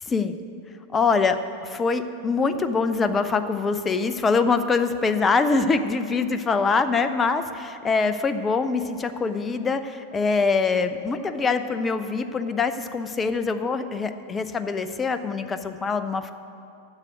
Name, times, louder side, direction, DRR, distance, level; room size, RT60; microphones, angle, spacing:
voice 1, 0.1-0.4 0.9-1.4 1.6-16.3, left 4 dB, 20° left, 10 dB, 0.6 m, -24 dB
9.8 x 7.5 x 9.0 m, 2.5 s
figure-of-eight pair, 90°, 0 cm